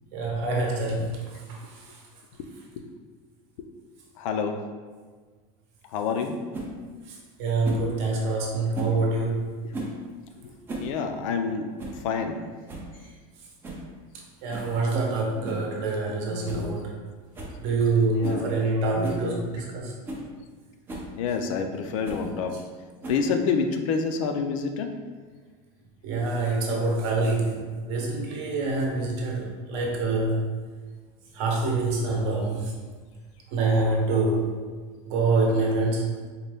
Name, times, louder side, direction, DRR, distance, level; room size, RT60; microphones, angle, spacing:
voice 1, 0.1-1.2 1.5-1.6 7.4-9.4 14.4-16.9 17.6-19.9 26.0-30.4 31.3-32.7 33.5-34.6 35.0-36.0, right 3 dB, 50° right, -1 dB, 0.8 m, -25 dB
voice 2, 4.2-4.6 5.9-6.4 9.6-9.8 10.4-10.5 10.8-12.4 16.3-16.7 18.1-18.4 19.0-19.4 21.2-22.6 23.1-24.9, left 5 dB, 65° left, 6 dB, 0.4 m, -28 dB
sound 1, 6.5-6.7 7.6-7.9 8.7-9.0 9.7-10.0 10.5-10.9 11.2-11.3 11.8-12.0 12.4-12.5 12.7-12.9 13.6-13.9 14.5-14.7 15.4-15.7 16.0-16.1 16.4-16.7 16.9-17.0 17.3-17.6 18.2-18.4 19.0-19.2 19.7-19.8 20.0-20.3 20.9-21.1 22.0-22.3 23.0-23.4, right 1 dB, 10° right, 0.3 m, -36 dB
4.0 x 2.2 x 3.3 m, 1.5 s
supercardioid pair, 175°, 18 cm